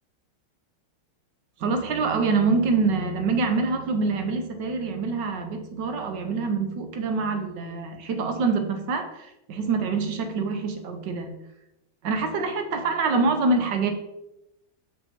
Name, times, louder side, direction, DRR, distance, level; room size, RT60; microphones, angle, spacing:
voice 1, 1.6-11.4 12.0-13.9, right 4 dB, 65° right, 6 dB, 1.5 m, -25 dB
7.3 x 5.5 x 4.4 m, 0.88 s
omnidirectional pair, 2.2 m